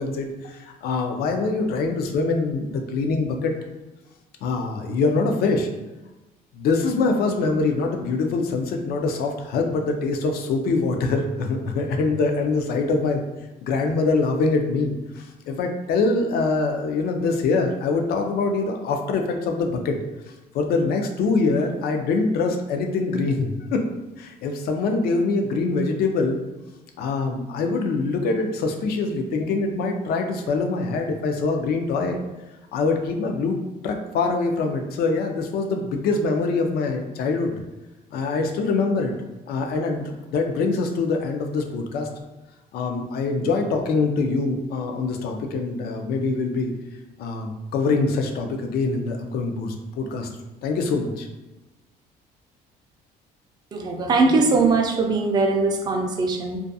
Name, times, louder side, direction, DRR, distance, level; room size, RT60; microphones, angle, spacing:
voice 1, 0.0-3.5 4.4-5.7 6.5-13.2 13.6-20.0 20.5-23.9 24.2-26.4 27.0-32.2 32.7-33.6 33.8-37.6 38.1-39.1 39.5-42.1 42.7-46.7 47.2-50.3 50.6-51.3, left 3 dB, 70° left, 4 dB, 0.4 m, -24 dB
voice 2, 53.7-56.6, right 3 dB, 25° right, 1 dB, 0.3 m, -21 dB
2.4 x 2.3 x 2.6 m, 1.1 s
cardioid pair, 110°, 17 cm